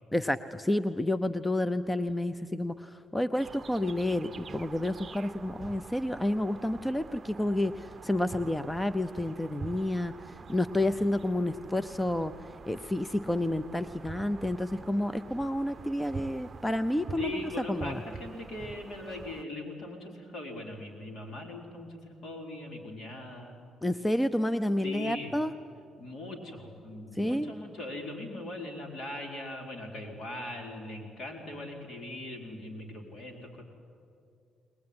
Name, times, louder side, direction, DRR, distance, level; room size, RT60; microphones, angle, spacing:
voice 1, 0.1-10.1 10.5-12.3 12.7-17.4 17.7-18.0 23.8-25.5 27.2-27.5, left 1 dB, 10° left, 13 dB, 0.6 m, -30 dB
sound 1, 3.4-19.4, right 5 dB, 40° right, 0.7 m, -46 dB
voice 2, 17.2-23.6 24.8-25.3 26.0-33.6, left 1 dB, 60° left, 1 dB, 4.5 m, -40 dB
21.0 x 20.5 x 9.7 m, 2.4 s
cardioid pair, 90°, 0 cm